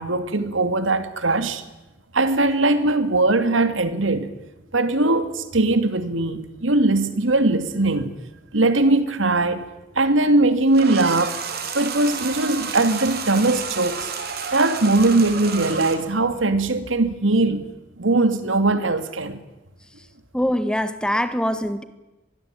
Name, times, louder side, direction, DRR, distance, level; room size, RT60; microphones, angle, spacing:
voice 1, 0.0-1.6 2.1-4.4 4.7-8.2 8.5-9.6 10.0-11.4 11.7-14.1 14.5-17.7 18.0-19.4, right 2 dB, 85° right, 2.3 m, -20 dB
sound 1, 10.7-16.0, right 6 dB, 55° right, 3.8 m, -31 dB
voice 2, 20.3-21.8, equal, 5° left, 1.5 m, -23 dB
25.0 x 20.5 x 8.9 m
head